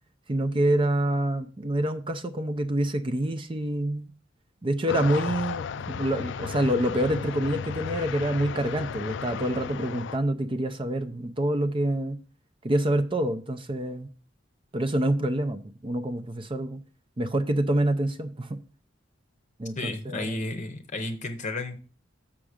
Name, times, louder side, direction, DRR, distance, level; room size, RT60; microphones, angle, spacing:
voice 1, 0.3-4.1 4.6-12.2 12.6-14.1 14.7-16.8 17.2-18.6 19.6-20.4, right 1 dB, 30° right, 0.6 m, -27 dB
sound 1, 4.9-10.2, left 7 dB, 65° left, 0.4 m, -34 dB
voice 2, 19.8-21.8, left 2 dB, 40° left, 0.8 m, -32 dB
7.3 x 5.9 x 5.0 m
head